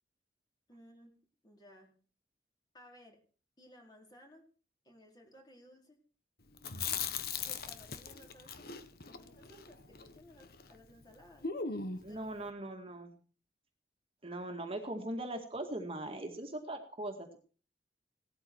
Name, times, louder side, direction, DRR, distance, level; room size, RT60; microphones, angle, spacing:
voice 1, 0.7-1.2 1.4-1.9 2.7-3.2 3.6-4.5 4.8-6.0 6.8-7.0 7.4-8.7 9.1-11.5 11.9-12.5, equal, 25° left, 1 dB, 4.2 m, -58 dB
Chewing mastication, 6.6-10.8 11.0-11.1 11.4-12.2, left 6 dB, 60° left, 1.3 m, -39 dB
voice 2, 12.0-13.1 14.2-17.4, right 1 dB, 30° right, 4 dB, 2.0 m, -40 dB
17.5 x 13.0 x 4.7 m, 0.40 s
head